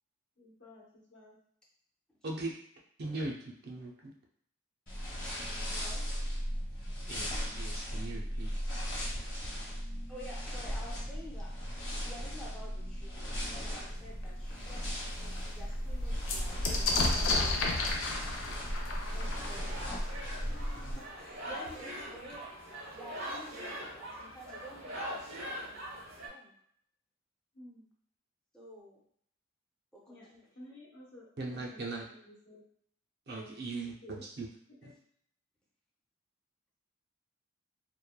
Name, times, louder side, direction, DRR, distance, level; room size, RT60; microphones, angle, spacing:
voice 1, 0.4-1.4 27.5-27.9 30.1-32.6 33.3-33.6 34.0-34.2 34.7-34.9, left 1 dB, 60° left, -4 dB, 0.9 m, -53 dB
voice 2, 2.2-2.6 3.0-4.1 7.1-8.5 31.4-32.1 33.3-34.5 34.8-34.9, right 2 dB, 50° right, -1 dB, 0.5 m, -39 dB
sound 1, 4.9-20.9, equal, 40° left, 1.1 m, -37 dB
voice 3, 5.7-6.1 10.1-17.6 18.9-26.5 28.5-29.0 29.9-30.5, equal, 5° left, -5 dB, 0.5 m, -51 dB
sound 2, 14.2-14.3 14.8-14.9 15.1-20.7 21.7-21.8 22.0-22.6, left 2 dB, 80° left, 0.5 m, -33 dB
sound 3, 18.7-26.3, equal, 80° right, 0.9 m, -43 dB
3.0 x 2.1 x 2.2 m, 0.65 s
head